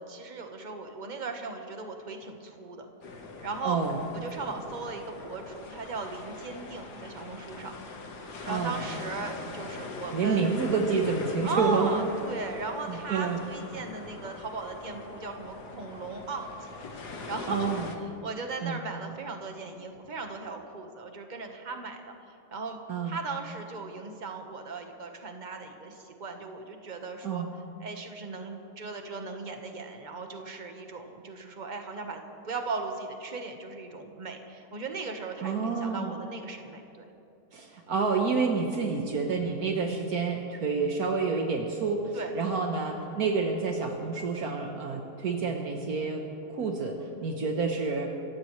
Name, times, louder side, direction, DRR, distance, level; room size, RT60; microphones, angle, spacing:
voice 1, 0.0-2.9 3.4-3.8 4.1-7.7 8.4-10.5 11.4-16.7 17.3-17.7 18.0-22.8 23.0-27.4 27.8-37.1 42.1-42.3, right 3 dB, 30° right, 4 dB, 1.3 m, -37 dB
sound 1, 3.0-18.0, left 3 dB, 80° left, 1.9 m, -42 dB
voice 2, 3.6-4.0 8.4-8.8 10.1-12.1 12.9-13.4 17.5-17.8 18.6-18.8 22.9-23.2 27.2-27.5 35.4-36.1 37.5-48.1, right 4 dB, 65° right, 2 dB, 1.5 m, -29 dB
27.0 x 15.5 x 3.2 m, 2.7 s
omnidirectional pair, 1.7 m